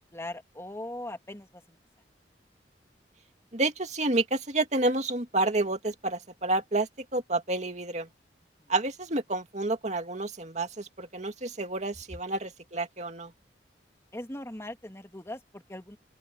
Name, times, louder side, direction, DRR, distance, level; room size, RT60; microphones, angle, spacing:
voice 1, 0.1-1.8 8.6-8.7 14.1-16.0, left 1 dB, 15° left, 2.5 m, -40 dB
voice 2, 3.5-8.1 8.7-13.3, right 2 dB, 40° right, 2.4 m, -29 dB
open air
head